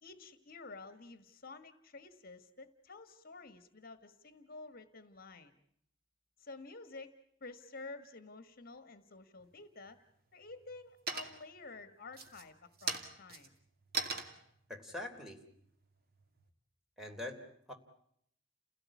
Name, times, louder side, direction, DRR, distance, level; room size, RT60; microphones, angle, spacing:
voice 1, 0.0-5.5 6.4-7.1 7.4-10.0 10.3-13.5, left 3 dB, 50° left, 11 dB, 1.6 m, -51 dB
sound 1, 9.4-10.0 10.4-10.8 11.1-11.6 12.1-16.5, right 4 dB, 55° right, 2.5 m, -41 dB
voice 2, 14.7-15.4 17.0-17.7, left 1 dB, ahead, 3 dB, 3.3 m, -44 dB
30.0 x 17.0 x 8.5 m, 0.72 s
head